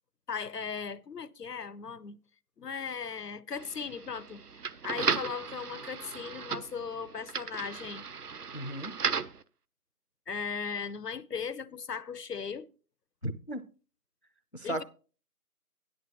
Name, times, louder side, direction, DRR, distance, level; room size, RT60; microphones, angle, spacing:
voice 1, 0.3-2.2 2.6-4.4 4.8-8.1 10.3-12.7 14.6-14.8, left 6 dB, 85° left, 0.8 m, -37 dB
sound 1, 3.5-9.4, right 5 dB, 75° right, 0.7 m, -36 dB
voice 2, 8.5-9.0 13.2-13.7 14.5-14.8, right 1 dB, 45° left, 0.5 m, -35 dB
14.0 x 11.0 x 3.0 m
figure-of-eight pair, 175°, 47 cm